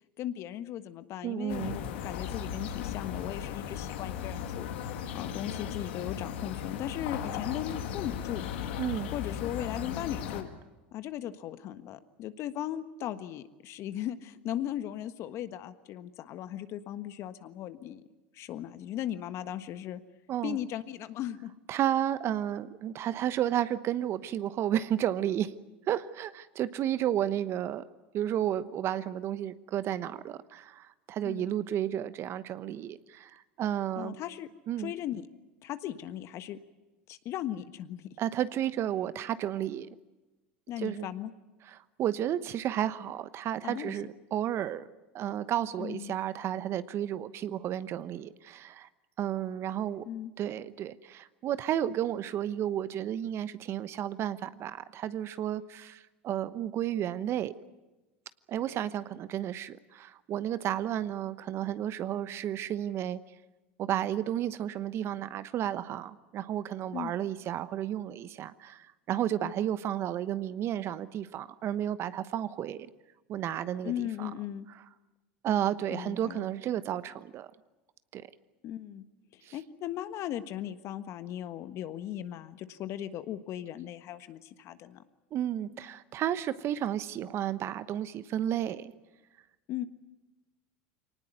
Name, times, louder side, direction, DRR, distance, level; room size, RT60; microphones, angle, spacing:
voice 1, 0.0-8.4 9.1-10.5 10.9-18.0 18.3-20.0 20.4-21.5 31.2-31.5 34.0-34.5 34.8-35.3 35.6-36.6 37.1-38.1 40.7-41.3 43.6-44.0 45.8-46.1 50.1-50.3 66.9-67.1 69.4-69.5 73.8-74.7 75.9-76.4 78.6-79.0 79.3-85.0 89.7-89.8, left 11 dB, 50° left, 11 dB, 1.4 m, -37 dB
voice 2, 1.2-1.8 8.8-9.1 20.3-20.6 21.7-25.5 25.9-27.8 28.1-34.2 34.7-34.9 38.2-39.9 40.8-41.1 41.7-44.9 45.1-48.9 49.2-50.0 50.4-57.5 58.5-63.2 63.8-72.9 73.3-74.3 75.4-77.5 78.1-78.3 79.4-79.5 85.3-88.9, right 11 dB, 45° right, 15 dB, 1.1 m, -32 dB
sound 1, 1.5-10.4, left 8 dB, 75° left, 2.2 m, -36 dB
24.0 x 19.0 x 9.4 m, 1.1 s
hypercardioid pair, 90°, 6 cm